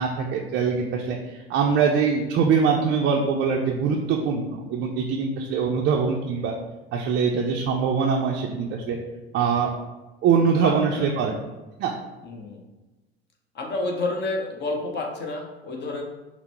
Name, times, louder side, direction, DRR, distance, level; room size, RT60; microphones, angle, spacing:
voice 1, 0.0-6.5 6.9-9.0 9.3-9.7 10.2-11.3 11.8-11.9, right 6 dB, 35° right, 0 dB, 0.5 m, -23 dB
voice 2, 10.6-11.1 12.2-12.6 13.5-16.0, left 2 dB, 30° left, 0 dB, 1.0 m, -29 dB
5.6 x 2.1 x 4.3 m, 1.1 s
figure-of-eight pair, 70°, 32 cm